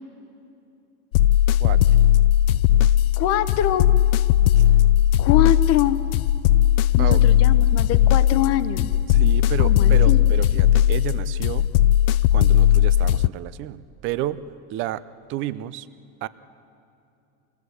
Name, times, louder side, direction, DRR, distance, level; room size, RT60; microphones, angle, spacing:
sound 1, 1.1-13.3, left 12 dB, 75° left, 0.5 m, -18 dB
voice 1, 3.2-3.9 5.2-6.0 7.0-8.9 9.6-10.3, left 11 dB, 35° left, 12 dB, 0.9 m, -23 dB
voice 2, 9.1-11.7 12.3-14.4 14.7-15.0 15.3-15.9 16.2-16.3, right 14 dB, 30° right, 15 dB, 0.4 m, -31 dB
25.0 x 18.0 x 8.0 m, 2.7 s
supercardioid pair, 155°, 43 cm